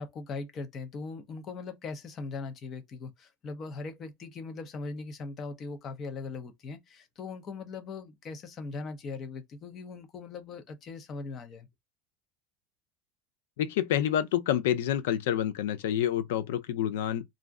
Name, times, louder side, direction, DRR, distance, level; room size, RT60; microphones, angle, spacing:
voice 1, 0.0-11.7, left 4 dB, 30° left, 0.6 m, -40 dB
voice 2, 13.6-17.2, left 11 dB, 90° left, 0.5 m, -28 dB
2.5 x 2.1 x 3.5 m
supercardioid pair, 155°, 0 cm